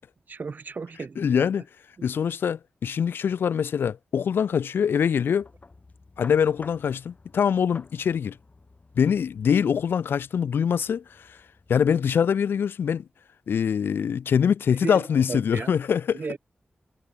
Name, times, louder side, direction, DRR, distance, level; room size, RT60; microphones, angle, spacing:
voice 1, 0.3-1.5 14.8-15.7 16.1-16.4, right 4 dB, 55° right, 0.5 m, -35 dB
voice 2, 1.2-1.6 2.0-5.5 6.2-8.4 9.0-11.4 11.7-13.1 13.5-16.2, left 7 dB, 85° left, 0.3 m, -24 dB
sound 1, 5.4-12.3, left 3 dB, 45° left, 6.8 m, -52 dB
cardioid pair, 55°, 4 cm